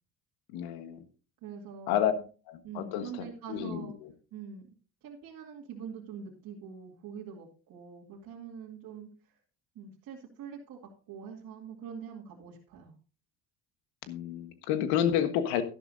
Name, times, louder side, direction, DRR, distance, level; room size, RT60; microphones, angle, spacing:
voice 1, 0.5-1.0 1.9-2.1 2.5-4.1 14.1-15.6, left 10 dB, 80° left, 10 dB, 1.5 m, -30 dB
voice 2, 1.4-2.0 2.6-3.9 4.3-4.7 5.0-9.4 9.7-10.8 11.1-12.9, right 7 dB, 60° right, -3 dB, 2.4 m, -44 dB
12.0 x 11.5 x 2.7 m, 0.36 s
supercardioid pair, 80°, 38 cm